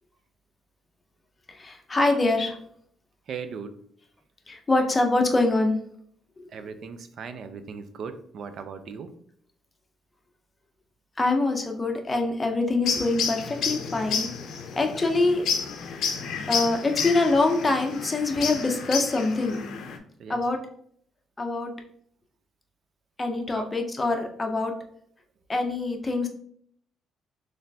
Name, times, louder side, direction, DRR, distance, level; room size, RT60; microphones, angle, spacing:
voice 1, 1.5-2.6 4.5-5.7 6.4-6.5 11.2-14.3 14.7-15.4 16.5-19.6 20.3-20.6 21.4-21.7 23.2-24.7 25.5-26.3, left 2 dB, 15° left, 3 dB, 0.6 m, -24 dB
voice 2, 3.3-3.7 6.5-9.1 17.0-17.1 20.2-20.4 23.5-23.7, right 6 dB, 50° right, 10 dB, 0.4 m, -38 dB
sound 1, 12.9-20.0, left 6 dB, 70° left, 0.5 m, -31 dB
4.1 x 3.2 x 2.7 m, 0.63 s
cardioid pair, 155°, 0 cm